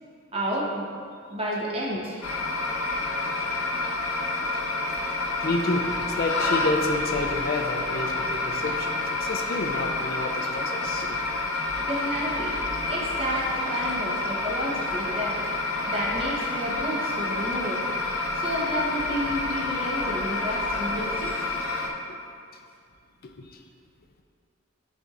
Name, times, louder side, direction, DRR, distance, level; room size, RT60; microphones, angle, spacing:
voice 1, 0.3-0.9 1.3-2.2 11.8-12.6 12.9-15.4 15.9-17.9 18.3-21.4, equal, 25° right, -4 dB, 1.0 m, -31 dB
sound 1, 2.2-21.9, left 2 dB, 90° left, 0.8 m, -28 dB
voice 2, 5.4-11.1 22.1-22.2 23.4-23.5, left 2 dB, 45° left, 3 dB, 0.4 m, -29 dB
11.0 x 4.2 x 2.5 m, 2.3 s
head